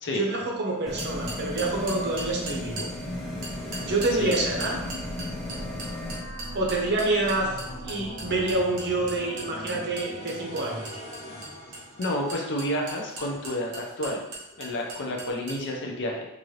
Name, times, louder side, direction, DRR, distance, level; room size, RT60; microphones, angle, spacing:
voice 1, 0.1-2.9 3.8-4.8 6.5-7.5 7.8-11.0, right 2 dB, 50° right, -1 dB, 0.8 m, -27 dB
sound 1, 0.9-6.2, left 1 dB, ahead, 0.5 m, -35 dB
sound 2, 1.0-2.9 3.4-15.7, right 2 dB, 85° right, 1.1 m, -38 dB
sound 3, 2.5-12.7, equal, 30° left, 0.8 m, -41 dB
voice 2, 12.0-14.2 14.6-16.3, left 1 dB, 55° left, 1 dB, 0.6 m, -30 dB
3.7 x 2.5 x 3.2 m, 0.93 s
head